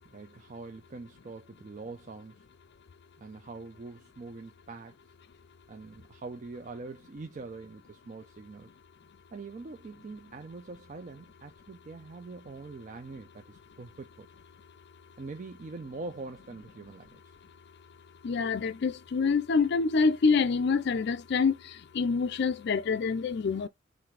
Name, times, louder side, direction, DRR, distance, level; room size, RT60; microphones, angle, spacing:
voice 1, 0.0-2.5 3.2-5.0 5.7-8.7 9.3-14.3 15.2-17.3, right 3 dB, 40° right, 0.4 m, -44 dB
voice 2, 18.2-23.7, left 5 dB, 55° left, 0.4 m, -26 dB
5.8 x 2.6 x 3.2 m
head